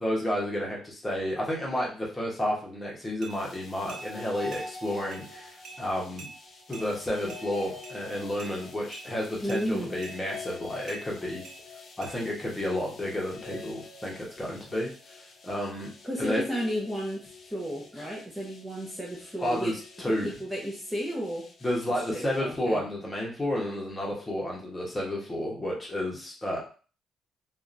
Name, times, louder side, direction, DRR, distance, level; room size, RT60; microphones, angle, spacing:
voice 1, 0.0-6.3 6.7-11.4 12.0-14.9 15.4-15.9 16.2-16.4 19.4-20.3 21.6-26.6, left 1 dB, 20° left, -3 dB, 1.1 m, -31 dB
sound 1, 3.2-3.4 3.9-4.1 4.5-4.7 5.1-5.2 5.6-5.8 6.2-6.3 6.7-6.9 7.3-7.4 7.8-8.0 8.4-8.5 8.9-9.1 9.5-9.6 10.0-10.2 10.9-11.0 11.4-11.6 12.0-12.1, right 4 dB, 70° right, 0.7 m, -44 dB
sound 2, 3.3-22.4, left 3 dB, 55° left, 0.7 m, -46 dB
voice 2, 9.4-9.9 16.0-19.8 20.1-21.5 22.1-22.8, equal, 5° right, -4 dB, 0.7 m, -33 dB
2.8 x 2.3 x 2.5 m, 0.38 s
cardioid pair, 90°, 0 cm